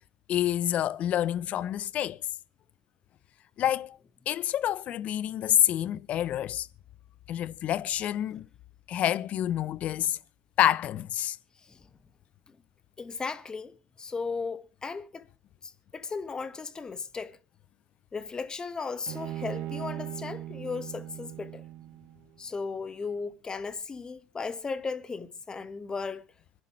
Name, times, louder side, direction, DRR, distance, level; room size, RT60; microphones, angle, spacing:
voice 1, 0.3-2.2 3.6-4.0 4.3-6.7 7.3-8.4 8.9-10.2 10.6-11.4, left 11 dB, 50° left, 0.8 m, -27 dB
voice 2, 13.0-15.3 15.6-17.4 18.1-21.6 22.4-26.2, left 4 dB, 25° left, 1.5 m, -36 dB
Bowed string instrument, 19.1-22.3, right 13 dB, 60° right, 1.3 m, -39 dB
26.0 x 11.0 x 3.2 m
hypercardioid pair, 75°, 3 cm